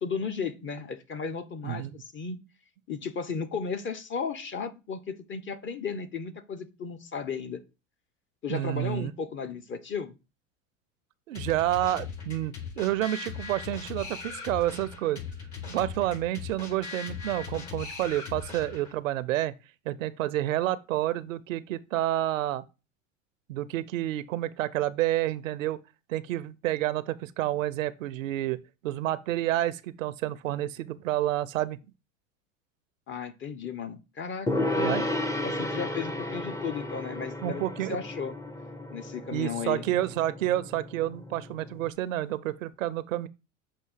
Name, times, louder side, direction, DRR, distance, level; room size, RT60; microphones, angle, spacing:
voice 1, 0.0-2.4 2.9-7.6 8.4-10.2 33.1-35.1 35.4-37.6 37.9-38.3 38.9-39.8, left 5 dB, 30° left, 0.9 m, -35 dB
voice 2, 1.6-1.9 8.5-9.1 11.3-15.2 15.7-19.5 19.9-22.6 23.5-25.8 26.1-28.6 28.8-31.8 34.8-35.1 37.4-38.0 39.3-43.3, right 14 dB, 90° right, 0.5 m, -29 dB
sound 1, 11.3-19.0, left 5 dB, 50° left, 4.2 m, -39 dB
Gong, 34.5-41.9, left 1 dB, 10° left, 0.5 m, -33 dB
6.6 x 2.7 x 5.5 m
hypercardioid pair, 95°, 38 cm